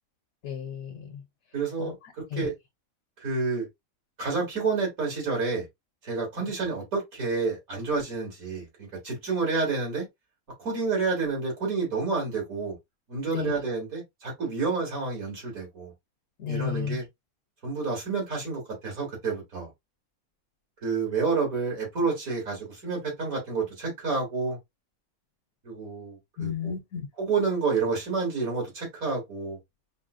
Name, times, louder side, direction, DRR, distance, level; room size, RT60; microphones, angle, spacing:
voice 1, 0.4-1.2 1.8-1.9 2.3-2.5 13.3-13.5 16.4-17.0 26.4-27.1, left 7 dB, 75° left, 1.3 m, -33 dB
voice 2, 1.5-2.5 3.2-3.7 4.2-5.6 6.0-10.1 10.6-12.8 13.1-15.9 16.5-17.1 17.6-19.7 20.8-24.6 25.6-26.7 27.2-29.6, right 4 dB, 75° right, 2.6 m, -29 dB
5.5 x 2.1 x 2.4 m
omnidirectional pair, 1.5 m